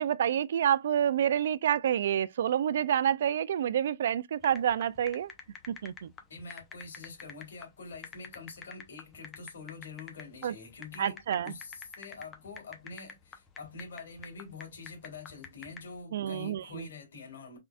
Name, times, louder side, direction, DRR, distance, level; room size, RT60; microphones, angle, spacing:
voice 1, 0.0-5.3 5.7-6.1 10.4-10.5 11.0-11.5 16.1-16.9, right 9 dB, 65° right, 0.3 m, -28 dB
sound 1, 4.4-16.0, left 6 dB, 15° left, 0.7 m, -47 dB
voice 2, 6.3-17.6, left 4 dB, 70° left, 2.0 m, -46 dB
3.7 x 3.3 x 2.4 m
hypercardioid pair, 140°, 0 cm